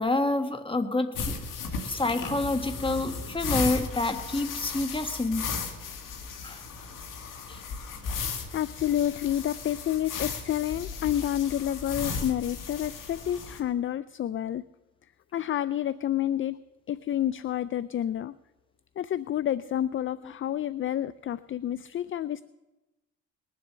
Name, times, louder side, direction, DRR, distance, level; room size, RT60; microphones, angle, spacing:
voice 1, 0.0-1.4 1.8-5.5 6.4-6.6 7.5-7.6, left 2 dB, 15° left, 8 dB, 1.5 m, -28 dB
sound 1, 1.1-13.6, left 5 dB, 75° left, 1.9 m, -35 dB
voice 2, 8.5-14.6 15.3-16.6 16.9-18.4 19.0-22.4, left 11 dB, 40° left, 17 dB, 0.4 m, -29 dB
20.5 x 7.6 x 6.7 m, 1.0 s
cardioid pair, 80°, 32 cm